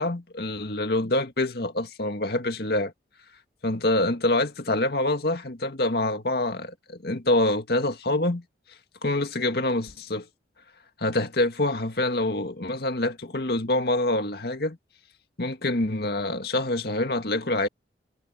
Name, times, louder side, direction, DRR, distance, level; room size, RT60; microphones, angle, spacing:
voice 1, 0.0-2.9 3.6-8.4 9.0-10.3 11.0-14.8 15.4-17.7, left 2 dB, 60° left, 2.0 m, -26 dB
head